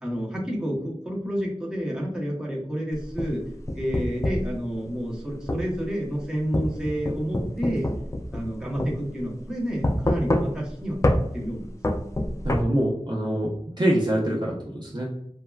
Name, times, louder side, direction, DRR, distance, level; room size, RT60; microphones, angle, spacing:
voice 1, 0.0-3.4 3.7-7.9 8.3-11.0 11.3-11.7, equal, 5° right, -4 dB, 0.9 m, -29 dB
sound 1, 2.9-4.5 5.5-5.7 6.5-8.5 8.8-8.9 9.8-10.7 11.0-11.2 11.8-12.6, left 1 dB, 25° left, 0.3 m, -25 dB
voice 2, 12.4-13.5 13.8-15.1, right 1 dB, 40° right, -3 dB, 0.6 m, -24 dB
3.3 x 2.1 x 2.3 m, 0.74 s
wide cardioid pair, 40°, 12 cm